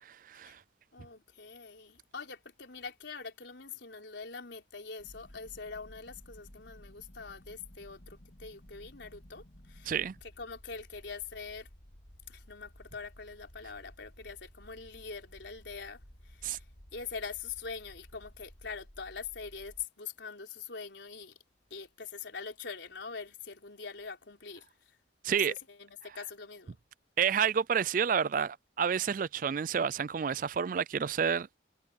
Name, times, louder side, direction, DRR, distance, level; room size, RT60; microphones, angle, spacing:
voice 1, 0.1-0.6 9.9-10.1 16.4-16.6 25.2-25.5 27.2-31.5, right 7 dB, 45° right, 0.4 m, -29 dB
voice 2, 0.9-9.9 10.2-11.7 12.3-16.6 16.9-21.3 21.7-24.7 25.3-26.8, left 5 dB, 75° left, 3.9 m, -44 dB
sound 1, 5.0-19.9, equal, 55° left, 2.9 m, -55 dB
head